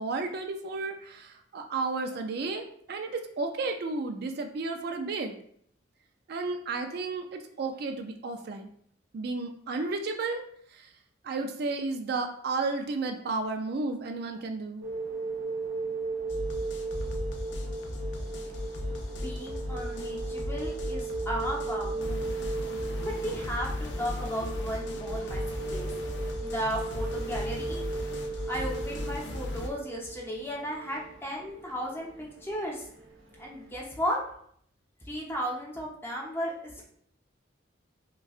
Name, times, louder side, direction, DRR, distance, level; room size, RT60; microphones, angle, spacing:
voice 1, 0.0-5.4 6.3-8.7 9.1-10.4 10.7-10.9 11.2-14.9, right 3 dB, 55° right, 5 dB, 0.3 m, -33 dB
sound 1, 14.8-33.7, right 3 dB, 90° right, 0.7 m, -37 dB
sound 2, 16.3-29.7, left 1 dB, 65° left, 0.5 m, -36 dB
voice 2, 19.2-22.3 23.0-25.4 25.7-26.0 26.4-27.8 28.5-32.9 33.4-34.2 35.0-36.8, equal, 10° left, -3 dB, 0.8 m, -35 dB
5.3 x 2.2 x 2.4 m, 0.65 s
head